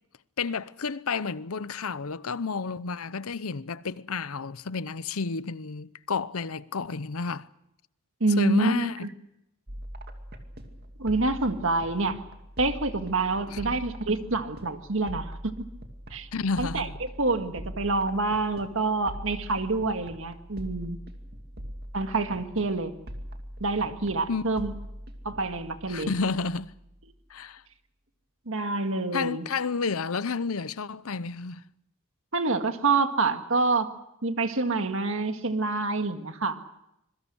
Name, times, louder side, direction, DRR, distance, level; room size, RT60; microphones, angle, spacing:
voice 1, 0.4-7.5 8.4-9.1 13.5-13.8 16.3-16.9 24.3-24.4 25.9-26.7 27.3-27.6 29.1-31.7, left 4 dB, 80° left, 0.8 m, -31 dB
voice 2, 8.2-8.9 11.0-12.2 12.6-15.5 16.1-16.3 16.6-16.9 17.2-21.0 21.9-22.9 23.6-24.7 25.2-26.1 28.5-29.5 32.3-33.9 34.2-36.6, right 3 dB, 65° right, 1.9 m, -27 dB
sound 1, 9.7-27.3, equal, 45° right, 2.5 m, -42 dB
26.0 x 22.5 x 6.3 m
head